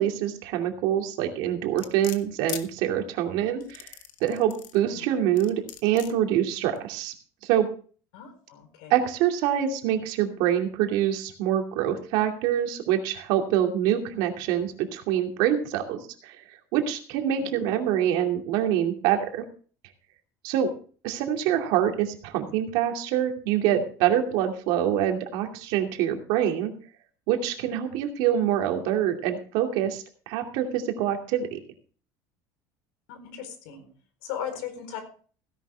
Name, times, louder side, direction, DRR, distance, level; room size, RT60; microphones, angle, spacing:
voice 1, 0.0-4.0 4.2-7.1 7.4-7.7 8.9-16.4 16.7-19.4 20.4-20.7 21.0-26.7 27.3-31.6, right 10 dB, 65° right, 3 dB, 2.6 m, -25 dB
sound 1, 1.8-2.7 3.6-4.8 5.4-6.1 6.8-6.9, left 11 dB, 50° left, 1.3 m, -39 dB
voice 2, 8.1-9.0 17.4-17.5 33.1-33.9 34.2-35.0, left 9 dB, 80° left, 8 dB, 4.3 m, -37 dB
16.5 x 11.0 x 3.5 m, 0.41 s
cardioid pair, 170°, 9 cm